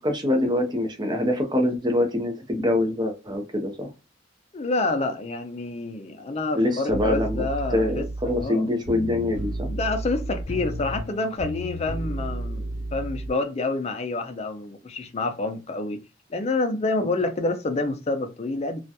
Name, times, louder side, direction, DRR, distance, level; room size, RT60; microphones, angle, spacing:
voice 1, 0.0-3.9 6.5-7.5 7.7-9.7, left 1 dB, 25° right, 0.6 m, -24 dB
voice 2, 4.5-8.7 9.7-16.0 16.3-18.8, left 2 dB, 35° left, 0.4 m, -28 dB
sound 1, 6.9-13.3, right 1 dB, 70° left, 0.7 m, -32 dB
2.4 x 2.2 x 2.7 m
head